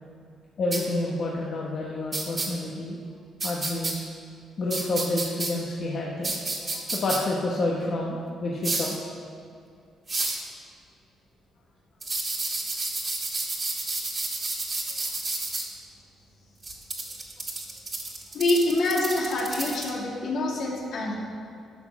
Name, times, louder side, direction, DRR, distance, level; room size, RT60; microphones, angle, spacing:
voice 1, 0.6-3.0 3.4-4.0 4.6-6.3 6.7-9.0, left 2 dB, 55° left, -3 dB, 1.2 m, -29 dB
sound 1, 0.7-0.8 2.1-2.5 3.4-3.9 4.7-5.5 6.2-7.2 8.6-9.0 10.1-10.4 12.0-15.6 16.6-19.9, right 3 dB, 30° right, 1.9 m, -30 dB
voice 2, 18.3-21.2, left 2 dB, 70° left, -3 dB, 2.5 m, -26 dB
11.5 x 6.0 x 6.2 m, 2.4 s
cardioid pair, 90°, 0 cm